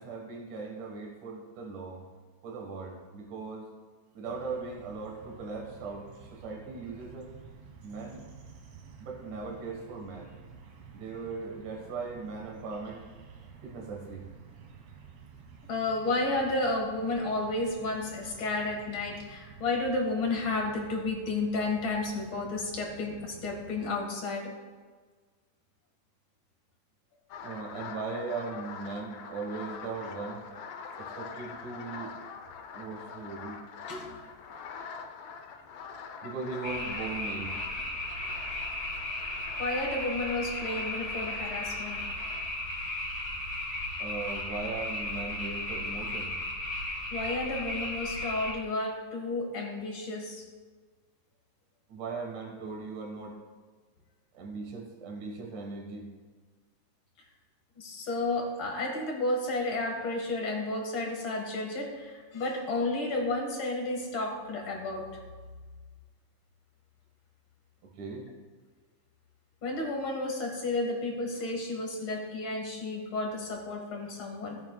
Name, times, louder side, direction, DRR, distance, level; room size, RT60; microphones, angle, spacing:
voice 1, 0.0-2.1 2.4-3.7 4.1-7.3 7.8-8.2 9.0-10.3 10.9-13.1 13.6-14.3 27.4-30.4 31.0-32.2 32.7-33.6 36.2-37.6 44.0-46.4 51.9-53.4 54.3-56.1 68.0-68.3, right 4 dB, 90° right, 0 dB, 3.0 m, -39 dB
sound 1, 4.3-24.0, right 6 dB, 65° right, 2.2 m, -51 dB
voice 2, 15.7-24.6 33.9-34.3 39.6-42.1 47.1-50.5 57.8-65.2 69.6-74.6, left 2 dB, 50° left, 1 dB, 2.2 m, -32 dB
sound 2, 27.3-42.5, left 5 dB, 75° left, 1.3 m, -44 dB
sound 3, 36.6-48.5, left 1 dB, 25° left, 2.4 m, -35 dB
17.0 x 8.7 x 2.3 m, 1.5 s
omnidirectional pair, 3.4 m